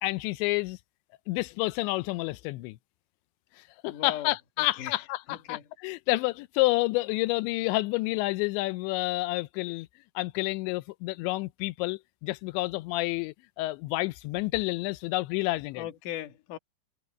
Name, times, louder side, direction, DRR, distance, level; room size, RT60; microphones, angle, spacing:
voice 1, 0.0-0.8 1.3-2.8 3.6-9.9 10.2-15.8, left 20 dB, 90° left, 3.0 m, -29 dB
voice 2, 3.9-4.3 4.6-5.0 5.3-5.6 15.8-16.6, left 12 dB, 55° left, 2.8 m, -38 dB
omnidirectional pair, 5.1 m